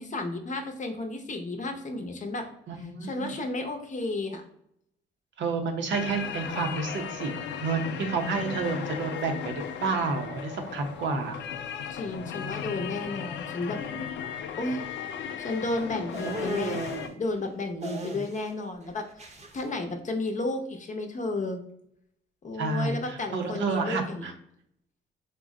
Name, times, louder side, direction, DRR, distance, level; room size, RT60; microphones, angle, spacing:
voice 1, 0.0-2.5 3.0-4.4 11.9-13.8 14.5-14.8 15.4-16.8 17.1-21.6 22.4-24.3, left 2 dB, 40° left, 5 dB, 0.7 m, -32 dB
voice 2, 2.7-3.4 5.4-7.3 7.6-11.4 22.6-24.3, right 4 dB, 70° right, 4 dB, 0.7 m, -30 dB
sound 1, 5.9-17.1, left 8 dB, 65° left, 0.4 m, -36 dB
sound 2, 16.1-17.1 17.8-18.6 18.8-19.6, right 3 dB, 35° right, 0.7 m, -35 dB
3.8 x 2.1 x 3.7 m, 0.72 s
cardioid pair, 90°, 20 cm